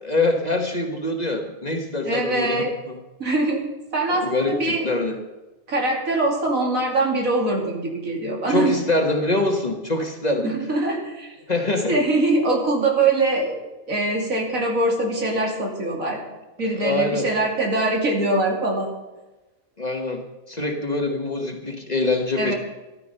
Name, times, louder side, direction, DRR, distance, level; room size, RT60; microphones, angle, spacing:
voice 1, 0.0-3.0 4.2-5.2 8.5-10.5 11.5-12.0 16.8-17.3 19.8-20.2 20.5-22.5, left 2 dB, 30° left, 3 dB, 1.4 m, -24 dB
voice 2, 2.1-2.7 3.2-4.9 5.7-8.7 10.4-11.3 11.9-13.6 13.9-16.2 16.6-18.9 22.4-22.5, right 2 dB, 75° right, 0 dB, 3.1 m, -23 dB
13.5 x 12.5 x 5.6 m, 1.1 s
omnidirectional pair, 1.4 m